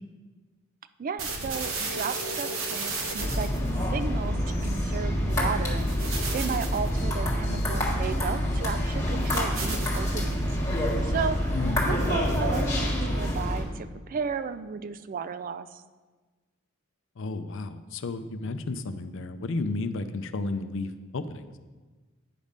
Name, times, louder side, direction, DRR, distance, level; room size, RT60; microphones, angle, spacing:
voice 1, 1.0-3.5 3.9-10.5 11.0-11.6 11.8-15.8, right 6 dB, 40° right, 13 dB, 0.3 m, -34 dB
sound 1, 1.2-13.0, right 1 dB, 75° right, 1.2 m, -35 dB
sound 2, 3.2-13.6, equal, 15° left, 1.7 m, -27 dB
voice 2, 11.5-11.9 17.2-21.5, left 3 dB, 65° left, 11 dB, 0.5 m, -33 dB
9.3 x 5.3 x 5.1 m, 1.3 s
head